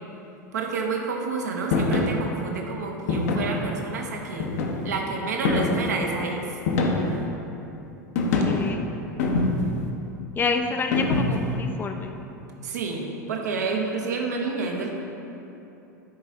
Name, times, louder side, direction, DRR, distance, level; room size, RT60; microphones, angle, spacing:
voice 1, 0.5-4.5 4.8-6.6 12.6-15.0, right 4 dB, 65° right, 1 dB, 0.9 m, -29 dB
sound 1, 1.7-2.1 3.1-3.6 4.4-5.0 5.4-5.9 6.7-7.2 8.1-8.7 9.2-9.8 10.9-11.5, left 3 dB, 55° left, 0.8 m, -24 dB
voice 2, 8.3-8.9 10.3-12.1, left 4 dB, 20° left, 5 dB, 0.4 m, -28 dB
9.6 x 4.1 x 3.7 m, 2.9 s
figure-of-eight pair, 85°, 10 cm